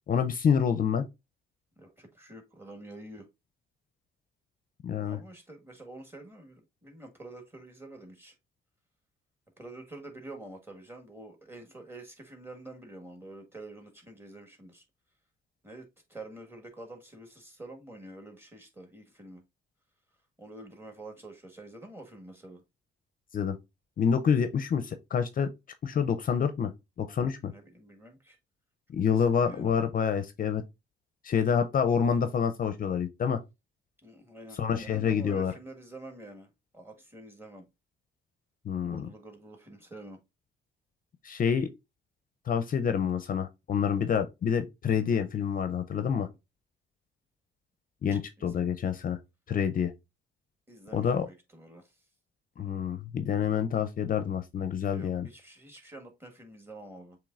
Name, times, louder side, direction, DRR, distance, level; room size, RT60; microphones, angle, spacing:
voice 1, 0.1-1.1 4.8-5.2 23.3-23.6 24.0-25.5 25.8-26.7 27.0-27.5 28.9-30.6 31.2-33.4 34.6-35.5 38.7-39.1 41.2-41.7 42.5-46.3 48.0-49.2 49.5-49.9 50.9-51.3 52.6-55.3, left 7 dB, 45° left, 0.5 m, -27 dB
voice 2, 1.8-3.3 4.9-8.3 9.6-14.8 15.6-19.4 20.4-22.6 27.5-28.4 29.1-29.7 34.0-37.6 38.8-40.2 48.1-48.7 50.7-51.9 54.9-57.2, right 2 dB, 10° right, 1.5 m, -47 dB
7.1 x 3.0 x 2.4 m
cardioid pair, 90°, 20 cm